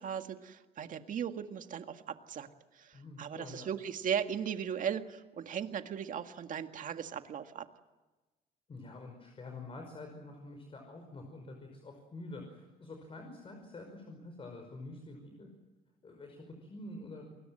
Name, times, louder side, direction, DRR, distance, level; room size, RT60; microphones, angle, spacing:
voice 1, 0.0-2.5 2.7-7.7, right 8 dB, 50° right, 7 dB, 1.8 m, -37 dB
voice 2, 2.9-3.7 8.7-15.5 16.0-17.3, left 2 dB, 35° left, 4 dB, 5.5 m, -47 dB
29.0 x 21.5 x 7.8 m, 1.2 s
cardioid pair, 110°, 17 cm